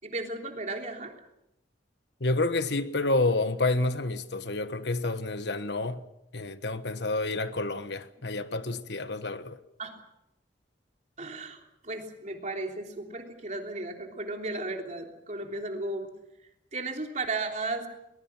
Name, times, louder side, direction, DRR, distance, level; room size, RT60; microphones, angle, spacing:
voice 1, 0.0-1.1 9.8-9.9 11.2-16.1 16.7-17.9, right 2 dB, 40° right, 3.4 m, -35 dB
voice 2, 2.2-6.0 6.3-9.6, left 2 dB, 65° left, 1.3 m, -29 dB
22.5 x 20.5 x 7.2 m
head